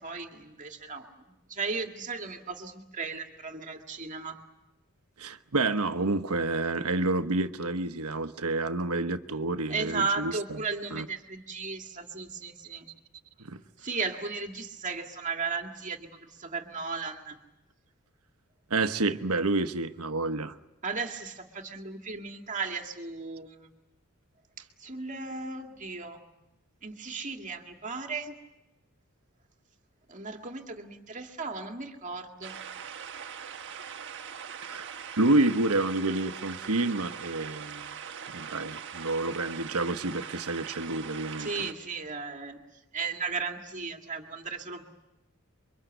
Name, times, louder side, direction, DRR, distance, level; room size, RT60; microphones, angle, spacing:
voice 1, 0.0-4.4 9.7-12.9 13.8-17.4 20.8-23.7 24.6-26.2 26.8-28.3 30.1-32.6 41.4-42.6 42.9-44.9, right 4 dB, 35° right, 4 dB, 2.2 m, -35 dB
voice 2, 5.2-10.6 10.9-11.1 13.4-13.6 18.7-20.5 34.6-34.9 35.2-37.9 38.3-41.7, right 2 dB, 75° right, 9 dB, 1.2 m, -29 dB
sound 1, 32.4-41.7, right 7 dB, 55° right, 1.3 m, -41 dB
29.0 x 24.0 x 8.2 m, 0.96 s
head